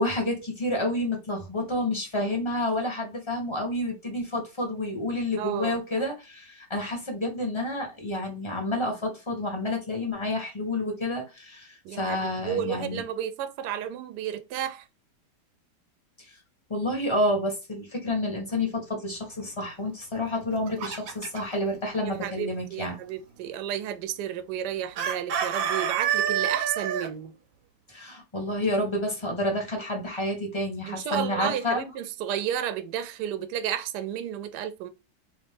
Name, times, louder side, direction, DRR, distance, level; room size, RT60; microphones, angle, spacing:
voice 1, 0.0-13.0 16.2-16.3 16.7-22.9 27.9-31.9, left 1 dB, 25° left, 0.7 m, -29 dB
voice 2, 5.4-5.8 11.8-14.9 22.0-27.3 30.9-34.9, right 10 dB, 70° right, 1.0 m, -32 dB
Chicken rooster, 20.3-21.6 25.0-27.1, right 9 dB, 90° right, 1.4 m, -28 dB
3.1 x 2.6 x 3.4 m
omnidirectional pair, 2.1 m